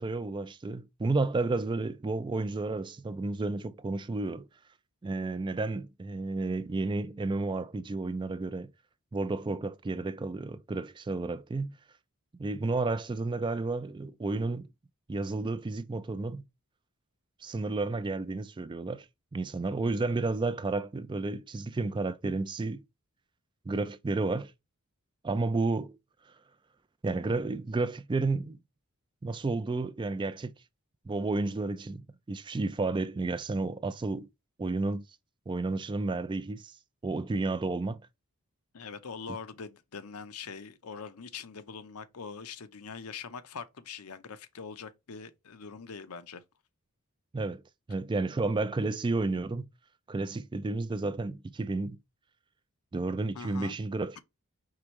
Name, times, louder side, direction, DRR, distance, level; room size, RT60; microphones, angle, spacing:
voice 1, 0.0-4.5 5.0-8.7 9.1-11.8 12.4-14.7 15.1-16.4 17.4-19.1 19.3-22.8 23.7-24.5 25.2-26.0 27.0-28.6 29.2-30.5 31.1-34.3 34.6-35.0 35.5-36.7 37.0-38.0 47.3-47.6 47.9-49.7 50.1-52.0 52.9-54.2, right 3 dB, 20° right, 0.3 m, -31 dB
voice 2, 38.7-46.4 53.3-53.8, left 5 dB, 80° left, 0.7 m, -43 dB
4.8 x 3.4 x 3.0 m
head